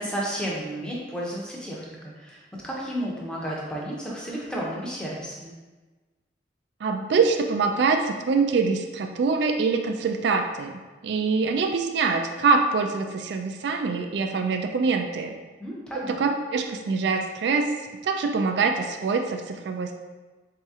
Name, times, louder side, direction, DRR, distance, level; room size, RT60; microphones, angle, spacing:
voice 1, 0.0-5.5 15.6-16.2, equal, 5° left, -4 dB, 0.6 m, -32 dB
voice 2, 6.8-15.3 15.9-17.7 18.0-19.9, right 4 dB, 65° right, 5 dB, 0.3 m, -24 dB
4.0 x 2.8 x 3.5 m, 1.3 s
head